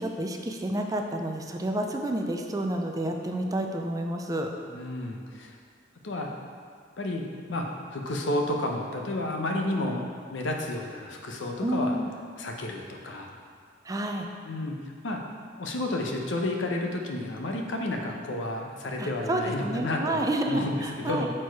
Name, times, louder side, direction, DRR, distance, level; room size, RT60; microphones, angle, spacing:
voice 1, 0.0-4.5 11.6-12.1 13.9-14.3 19.0-21.3, right 1 dB, 20° right, 3 dB, 0.4 m, -29 dB
voice 2, 4.7-5.6 6.0-6.3 7.0-7.7 7.9-10.0 10.3-11.9 12.4-13.3 14.5-14.8 15.0-15.2 15.6-21.3, left 1 dB, 85° left, 1 dB, 0.8 m, -31 dB
6.3 x 4.4 x 4.6 m, 2.1 s
head